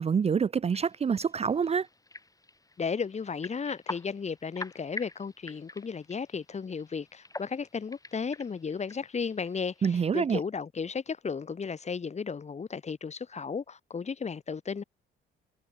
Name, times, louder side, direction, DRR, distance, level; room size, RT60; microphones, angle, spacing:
voice 1, 0.0-1.9 9.8-10.4, right 6 dB, 30° right, 0.5 m, -26 dB
sound 1, 0.7-10.0, left 2 dB, 15° left, 4.9 m, -46 dB
voice 2, 2.8-14.8, left 5 dB, 35° left, 1.6 m, -34 dB
cardioid pair, 90°, 20 cm